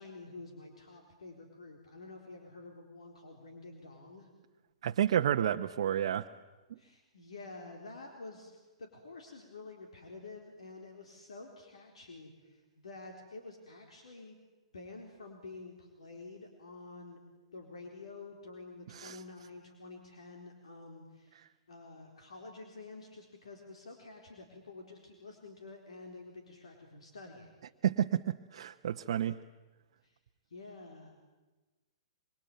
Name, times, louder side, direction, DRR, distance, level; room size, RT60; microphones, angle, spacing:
voice 1, 0.0-4.3 6.8-14.4 14.7-17.2 17.5-27.5 30.0-30.2 30.5-31.1, left 3 dB, 75° left, 3 dB, 4.0 m, -49 dB
voice 2, 4.8-6.3 18.9-19.2 27.8-29.4, right 10 dB, 65° right, 5 dB, 0.9 m, -30 dB
26.0 x 25.0 x 9.0 m, 1.2 s
hypercardioid pair, 115°, 3 cm